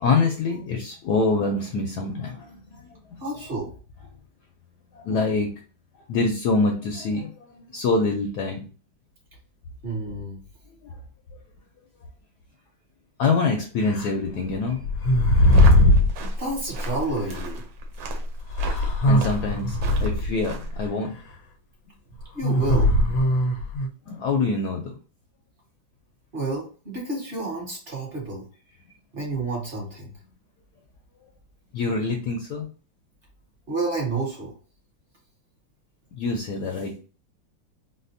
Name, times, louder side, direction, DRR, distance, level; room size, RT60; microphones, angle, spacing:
voice 1, 0.0-2.8 4.9-5.5 6.1-7.3 7.7-8.6 13.2-14.8 19.1-21.1 24.1-24.9 31.7-32.7 36.2-37.0, left 3 dB, 70° left, 2 dB, 1.0 m, -25 dB
voice 2, 3.2-3.7 9.8-10.4 16.2-17.6 22.3-22.9 26.3-28.4 29.1-30.1 33.7-34.5, right 2 dB, 35° right, -3 dB, 1.4 m, -30 dB
sound 1, 13.9-14.1 14.8-16.1 17.3-17.4 18.5-20.3 22.4-23.9, left 1 dB, 90° left, 1.4 m, -19 dB
sound 2, 15.3-20.9, right 1 dB, 90° right, 1.5 m, -34 dB
4.1 x 2.1 x 2.6 m, 0.37 s
omnidirectional pair, 2.1 m